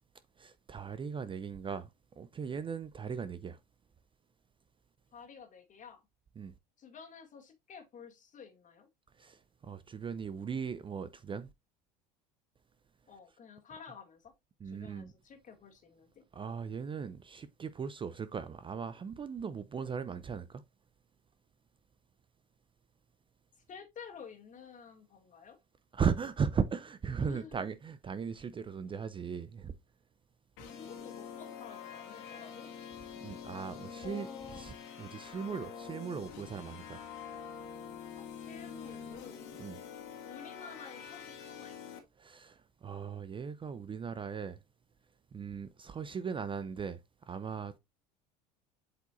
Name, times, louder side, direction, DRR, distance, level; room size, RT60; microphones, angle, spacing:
voice 1, 0.4-1.9 2.2-3.6 6.4-6.5 9.2-11.5 14.6-15.1 16.3-20.6 25.9-29.7 33.2-34.3 34.6-37.0 39.6-39.8 42.2-44.6 45.3-47.8, right 6 dB, 25° right, 0.5 m, -38 dB
voice 2, 5.1-6.0 6.8-8.9 13.1-14.3 14.6-16.1 23.7-25.6 27.2-27.7 30.6-32.7 34.0-34.8 38.2-39.5 40.2-41.8, left 6 dB, 40° left, 2.1 m, -51 dB
sound 1, 30.6-42.0, left 7 dB, 65° left, 2.2 m, -46 dB
7.8 x 4.8 x 2.5 m
hypercardioid pair, 80°, 21 cm